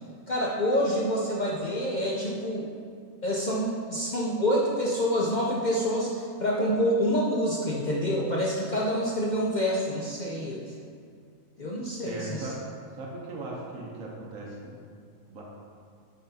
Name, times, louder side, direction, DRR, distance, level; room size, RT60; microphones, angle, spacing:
voice 1, 0.3-2.7 3.2-10.7 11.6-12.5, equal, 60° left, -4 dB, 0.4 m, -27 dB
voice 2, 12.0-12.5 12.9-14.7 15.3-15.4, right 3 dB, 75° right, -3 dB, 1.2 m, -38 dB
9.2 x 4.2 x 2.7 m, 2.3 s
omnidirectional pair, 1.4 m